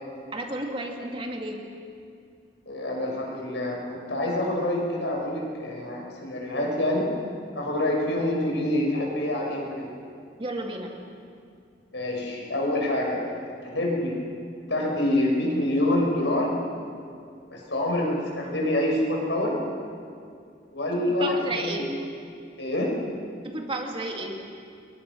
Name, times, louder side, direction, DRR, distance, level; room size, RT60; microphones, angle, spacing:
voice 1, 0.3-1.6 10.4-10.9 21.0-21.9 23.4-24.4, right 2 dB, 30° right, 1 dB, 2.5 m, -32 dB
voice 2, 2.7-7.0 7.5-9.9 11.9-14.2 14.7-16.5 17.5-19.6 20.7-21.9 22.6-22.9, left 1 dB, 75° left, -1 dB, 6.1 m, -26 dB
29.5 x 22.0 x 6.3 m, 2.4 s
head